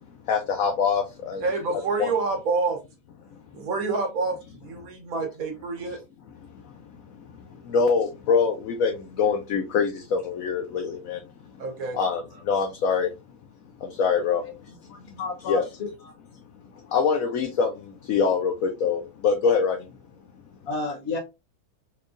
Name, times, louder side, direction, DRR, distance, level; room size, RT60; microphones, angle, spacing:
voice 1, 0.3-1.5 1.7-2.1 6.6-6.9 7.2-11.2 11.9-13.1 13.8-14.7 15.5-15.6 16.9-19.8, left 5 dB, 70° left, 1.0 m, -25 dB
voice 2, 1.4-2.8 3.5-6.0 11.6-12.0, right 4 dB, 70° right, 1.5 m, -27 dB
voice 3, 14.4-16.1 16.7-16.9 20.6-21.2, left 3 dB, 45° left, 1.1 m, -33 dB
4.5 x 2.3 x 2.5 m
omnidirectional pair, 1.6 m